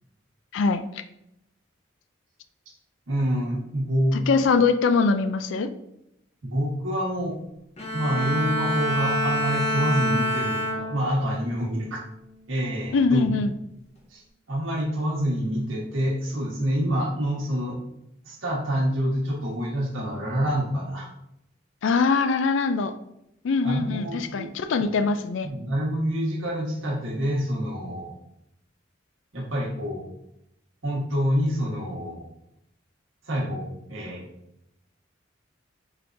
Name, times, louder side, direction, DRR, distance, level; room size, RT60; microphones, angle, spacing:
voice 1, 0.5-0.8 4.1-5.7 12.9-13.5 21.8-22.9 23.4-25.5, left 4 dB, 70° left, 10 dB, 0.4 m, -22 dB
voice 2, 3.1-4.2 6.4-7.4 7.9-12.0 12.5-13.2 14.1-14.2 14.5-17.8 18.2-21.1 23.6-24.5 24.8-25.0 25.4-28.1 29.3-30.0 30.8-32.3 33.3-34.3, equal, 80° right, -2 dB, 1.2 m, -27 dB
Bowed string instrument, 7.8-11.3 11.8-12.2, equal, 30° left, 0.8 m, -27 dB
4.6 x 3.5 x 2.5 m, 0.80 s
head